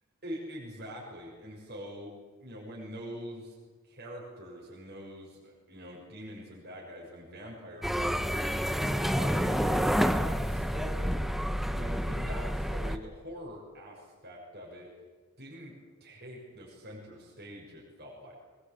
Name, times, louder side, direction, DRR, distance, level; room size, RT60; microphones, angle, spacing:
voice 1, 0.2-2.1 2.4-3.6 3.8-8.2 8.8-11.2 11.7-14.9 15.4-15.7 16.0-18.3, equal, 50° right, -2 dB, 6.5 m, -44 dB
sound 1, 7.8-13.0, equal, ahead, 0.8 m, -29 dB
22.0 x 21.0 x 8.6 m, 1.4 s
head